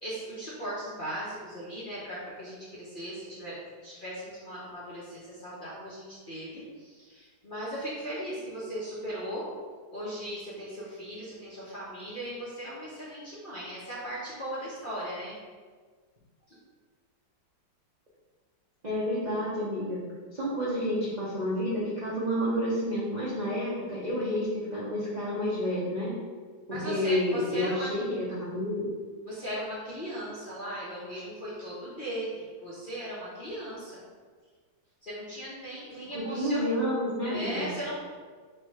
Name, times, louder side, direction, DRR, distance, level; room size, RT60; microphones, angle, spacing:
voice 1, 0.0-9.5 9.9-15.4 16.5-16.6 26.7-27.9 29.3-34.0 35.0-36.6 37.2-38.0, equal, 40° left, -9 dB, 0.8 m, -38 dB
voice 2, 18.8-20.0 20.3-26.1 26.7-28.9 36.1-37.7, equal, 45° right, -8 dB, 0.5 m, -30 dB
3.4 x 3.2 x 4.8 m, 1.5 s
omnidirectional pair, 2.0 m